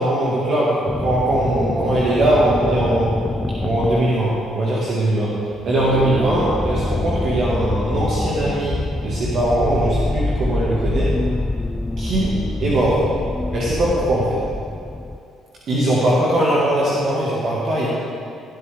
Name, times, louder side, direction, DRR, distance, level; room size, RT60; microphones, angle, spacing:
voice 1, 0.0-3.1 3.6-5.4 5.7-11.1 12.0-13.1 13.5-14.4 15.7-17.9, right 1 dB, 55° right, -7 dB, 2.2 m, -20 dB
sound 1, 0.9-4.5 5.5-15.2, left 1 dB, 15° left, 0.3 m, -25 dB
16.0 x 8.0 x 3.8 m, 2.5 s
hypercardioid pair, 50°, 0 cm